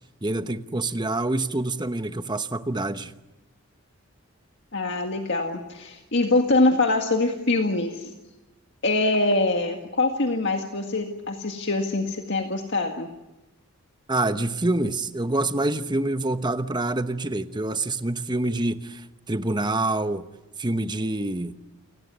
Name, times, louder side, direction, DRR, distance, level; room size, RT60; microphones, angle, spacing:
voice 1, 0.2-3.1 14.1-20.2 20.6-21.5, right 2 dB, 20° right, 1.0 m, -26 dB
voice 2, 4.7-8.1 8.8-13.1, left 2 dB, 55° left, 1.9 m, -24 dB
29.0 x 17.5 x 9.5 m
head